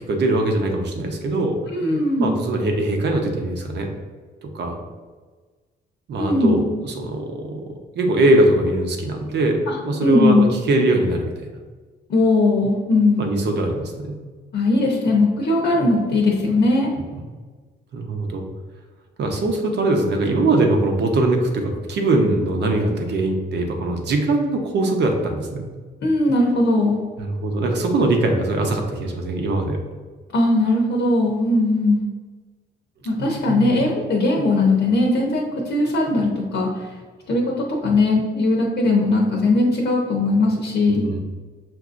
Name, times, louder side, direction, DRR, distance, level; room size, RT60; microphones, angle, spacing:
voice 1, 0.1-1.6 2.2-3.9 4.4-4.8 6.1-7.6 8.0-9.6 9.8-11.3 13.2-14.2 17.9-18.4 19.2-25.6 27.2-29.8 33.0-33.7 40.9-41.2, right 2 dB, 60° right, 3 dB, 0.8 m, -21 dB
voice 2, 1.7-2.3 6.2-6.6 9.7-9.8 10.0-10.5 12.1-13.3 14.5-16.9 26.0-27.0 30.3-32.0 33.0-36.9 37.3-41.1, left 2 dB, 60° left, -1 dB, 0.8 m, -19 dB
6.0 x 2.6 x 2.5 m, 1.4 s
cardioid pair, 90°, 20 cm